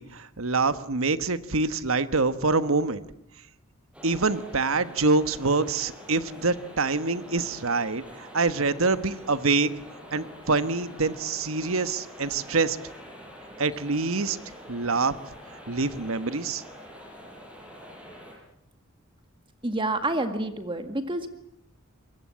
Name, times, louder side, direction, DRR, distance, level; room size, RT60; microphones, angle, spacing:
voice 1, 0.0-3.0 4.0-9.7 10.1-12.8 13.6-14.4 14.7-15.1 15.7-16.6, right 3 dB, 70° right, 12 dB, 1.3 m, -25 dB
sound 1, 3.9-18.3, equal, 5° right, 6.4 m, -46 dB
voice 2, 19.6-21.3, right 2 dB, 25° right, 8 dB, 1.9 m, -28 dB
25.5 x 22.0 x 8.6 m, 0.76 s
head